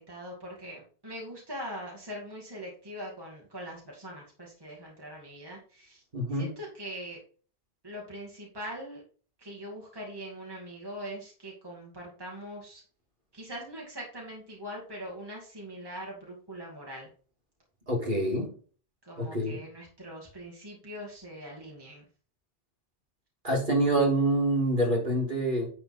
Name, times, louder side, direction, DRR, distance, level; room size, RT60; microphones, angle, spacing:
voice 1, 0.0-6.0 6.3-7.2 7.8-9.0 9.4-12.8 13.3-17.1 19.0-22.1, equal, 20° right, -2 dB, 2.2 m, -42 dB
voice 2, 6.1-6.5 17.9-18.5 19.2-19.6 23.4-25.7, right 1 dB, 50° right, -3 dB, 3.0 m, -26 dB
10.0 x 4.3 x 4.3 m, 0.42 s
omnidirectional pair, 1.1 m